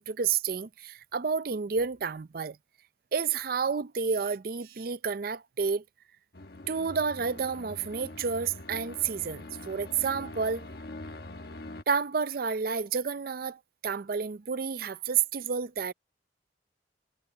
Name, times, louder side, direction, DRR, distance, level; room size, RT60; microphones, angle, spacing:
voice 1, 0.0-2.6 3.1-5.8 6.7-10.7 11.9-15.9, right 6 dB, 55° right, 0.5 m, -30 dB
sound 1, 6.3-11.8, left 2 dB, 60° left, 1.2 m, -44 dB
head